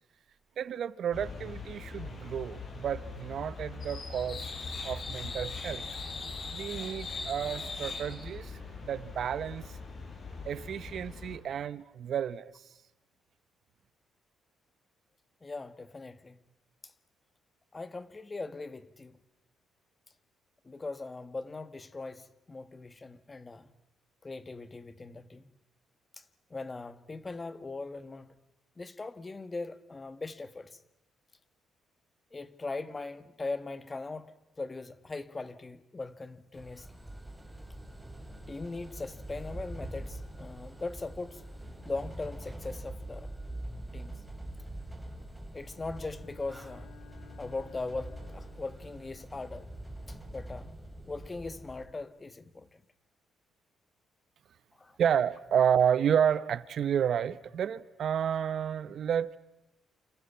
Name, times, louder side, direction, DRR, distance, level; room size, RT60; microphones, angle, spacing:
voice 1, 0.6-4.5 4.8-5.8 6.5-8.5 8.8-9.6 10.4-12.5 55.0-59.3, right 8 dB, 65° right, 1.1 m, -30 dB
sound 1, 1.1-11.4, left 4 dB, 45° left, 5.2 m, -40 dB
voice 2, 15.4-16.4 17.7-19.2 20.6-23.7 24.2-25.4 26.2-26.3 26.5-28.3 28.8-30.8 32.3-36.9 38.5-41.4 41.8-43.3 43.9-44.1 45.5-46.9 47.4-49.7 50.3-50.7 51.1-52.7 54.8-54.9, left 3 dB, 25° left, 1.6 m, -40 dB
sound 2, 36.5-51.8, right 1 dB, ahead, 4.6 m, -44 dB
Bowed string instrument, 45.8-49.0, left 9 dB, 85° left, 3.1 m, -57 dB
29.0 x 28.0 x 5.8 m
cardioid pair, 90°, 0 cm